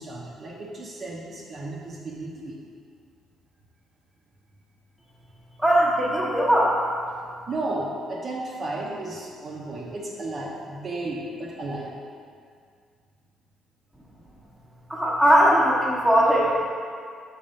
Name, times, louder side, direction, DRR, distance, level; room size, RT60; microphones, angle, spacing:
voice 1, 0.0-2.7 7.5-12.0, right 2 dB, 45° right, -3 dB, 0.8 m, -33 dB
voice 2, 5.6-6.9 14.9-16.5, equal, 5° right, -6 dB, 1.2 m, -19 dB
5.2 x 4.0 x 5.5 m, 2.2 s
cardioid pair, 115°, 0 cm